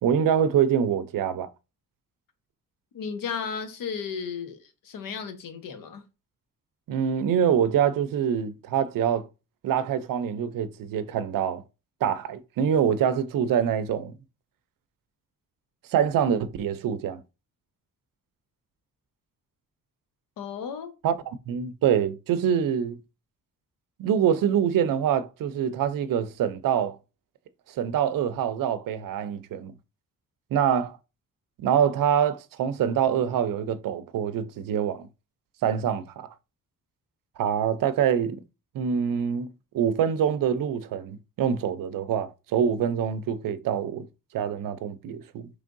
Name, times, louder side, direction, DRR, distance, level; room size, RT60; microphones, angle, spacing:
voice 1, 0.0-1.5 6.9-9.3 9.6-11.6 12.0-14.2 15.9-17.2 21.0-23.0 24.0-27.0 27.7-29.7 30.5-31.0 31.6-35.1 35.6-36.3 37.4-38.4 38.7-39.5 39.7-44.1 44.3-45.5, right 8 dB, 75° right, 0.5 m, -25 dB
voice 2, 2.9-6.0 20.4-20.9, left 6 dB, 80° left, 0.9 m, -34 dB
4.4 x 3.3 x 2.5 m
wide cardioid pair, 135°, 34 cm